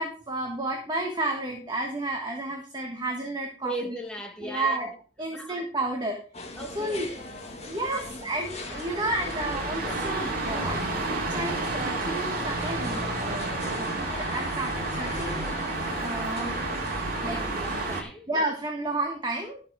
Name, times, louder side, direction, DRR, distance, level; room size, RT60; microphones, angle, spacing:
voice 1, 0.0-3.7 4.4-4.9 5.2-6.2 6.7-7.1 7.6-13.5 13.7-15.4 16.0-16.6 17.2-17.4 18.3-19.6, right 2 dB, 20° right, 1.4 m, -31 dB
voice 2, 3.6-4.9 5.3-5.6 6.6-7.0 7.9-8.3 11.3-11.6 17.4-18.3, right 2 dB, 5° left, 1.7 m, -38 dB
sound 1, 6.3-18.0, left 2 dB, 30° left, 1.8 m, -40 dB
sound 2, 6.5-18.0, right 2 dB, 45° right, 2.4 m, -31 dB
12.0 x 6.8 x 4.9 m
head